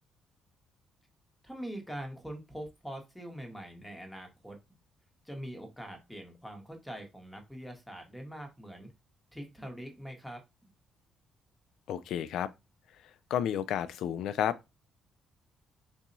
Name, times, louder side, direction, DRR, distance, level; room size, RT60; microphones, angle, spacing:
voice 1, 1.4-4.6 5.2-8.9 9.3-10.4, equal, 5° left, 1.2 m, -43 dB
voice 2, 11.9-12.5 13.3-14.8, left 10 dB, 80° left, 0.3 m, -31 dB
4.1 x 2.7 x 2.6 m
cardioid pair, 90°, 0 cm